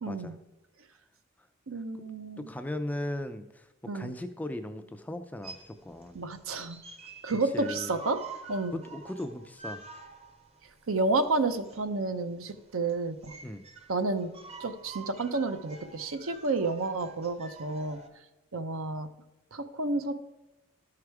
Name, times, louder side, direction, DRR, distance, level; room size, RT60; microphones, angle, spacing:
voice 1, 0.0-0.4 1.7-2.5 3.9-4.1 6.1-6.8 7.2-8.2 8.5-8.8 10.9-13.3 13.9-14.3 14.6-18.0 18.5-19.1 19.5-20.1, right 3 dB, 75° right, 10 dB, 0.7 m, -30 dB
voice 2, 2.4-6.3 7.5-7.9 8.7-9.8 13.4-13.7, left 1 dB, 5° left, 8 dB, 0.3 m, -38 dB
sound 1, 5.4-18.1, right 4 dB, 30° right, 0.8 m, -47 dB
12.5 x 4.8 x 4.7 m, 1.0 s
head